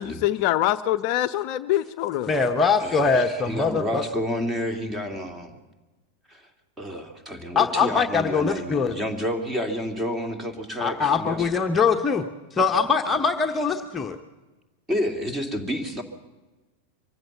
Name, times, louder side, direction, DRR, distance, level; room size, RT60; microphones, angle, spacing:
voice 1, 0.0-2.3, left 14 dB, 45° left, 11 dB, 0.6 m, -24 dB
voice 2, 2.3-4.0 7.5-8.9 10.8-12.2 12.5-14.2, left 5 dB, 15° left, 4 dB, 1.0 m, -22 dB
voice 3, 2.8-5.6 6.3-6.5 6.8-11.5 14.9-16.0, equal, 15° right, 6 dB, 2.5 m, -30 dB
24.0 x 15.5 x 7.3 m, 1.2 s
figure-of-eight pair, 90°, 0 cm